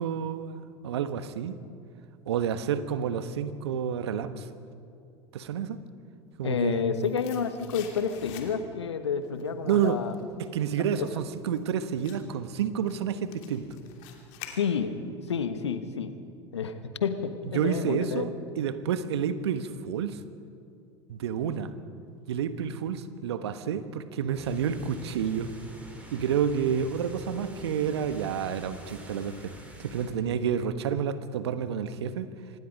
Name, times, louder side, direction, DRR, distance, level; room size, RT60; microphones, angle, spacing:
voice 1, 0.0-1.5 2.3-4.5 5.3-5.8 6.4-6.9 9.7-10.0 10.4-13.6 17.5-18.3 18.6-20.2 21.1-21.7 22.3-25.5 26.1-29.5 29.8-32.3, right 8 dB, 75° right, 12 dB, 1.2 m, -29 dB
voice 2, 6.4-10.1 11.0-11.1 14.4-14.9 15.3-16.1 16.5-18.2, left 6 dB, 80° left, 10 dB, 1.3 m, -30 dB
sound 1, 6.5-8.9 9.2-15.1 15.4-15.5, left 9 dB, 55° left, 2.9 m, -48 dB
sound 2, 24.4-30.1, equal, 10° right, 5.5 m, -46 dB
25.5 x 19.5 x 5.3 m, 2.5 s
figure-of-eight pair, 80°, 14 cm